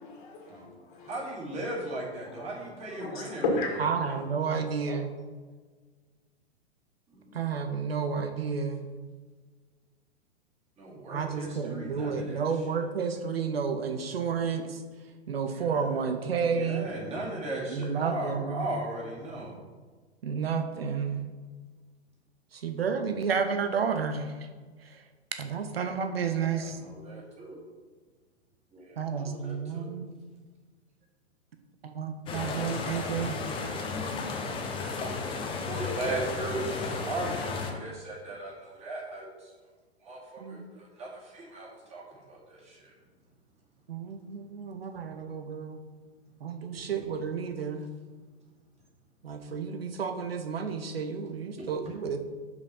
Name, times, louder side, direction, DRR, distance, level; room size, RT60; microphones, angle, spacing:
voice 1, 0.0-1.1 2.4-2.5 2.9-3.8, left 2 dB, 45° left, 0 dB, 2.2 m, -33 dB
voice 2, 1.0-3.4 4.0-5.0 7.1-7.4 10.8-12.8 15.5-16.0 16.5-19.6 26.2-27.6 28.7-29.9 34.8-35.1 35.4-39.5 40.0-42.9 51.6-51.9, right 2 dB, 20° right, -4 dB, 2.3 m, -38 dB
voice 3, 3.8-5.1 7.3-8.8 11.1-14.8 15.3-16.9 17.7-18.7 20.2-21.2 22.5-24.4 24.8-25.0 25.4-26.8 29.0-30.1 31.8-33.4 40.4-40.6 43.9-45.8 46.4-47.9 49.2-52.2, right 6 dB, 65° right, 7 dB, 0.8 m, -31 dB
sound 1, 32.3-37.7, left 4 dB, 15° left, 0.8 m, -33 dB
6.2 x 5.2 x 5.6 m, 1.5 s
figure-of-eight pair, 105°, 33 cm